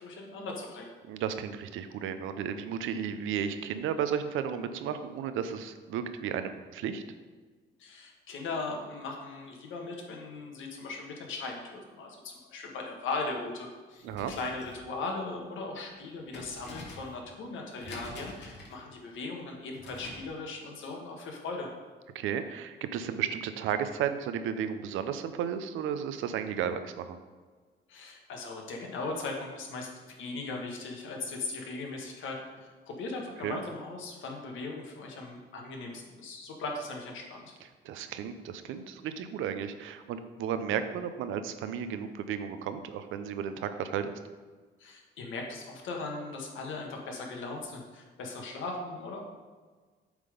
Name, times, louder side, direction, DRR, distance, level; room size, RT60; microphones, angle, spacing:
voice 1, 0.0-0.9 7.8-21.7 27.9-37.5 44.8-49.2, left 3 dB, 80° left, 1 dB, 1.5 m, -38 dB
voice 2, 1.1-7.0 14.0-14.3 22.1-27.2 33.4-33.6 37.8-44.2, right 8 dB, 90° right, 10 dB, 0.6 m, -33 dB
sound 1, 14.0-20.3, left 2 dB, 60° left, 2.0 m, -48 dB
8.1 x 3.8 x 5.1 m, 1.4 s
cardioid pair, 90°, 20 cm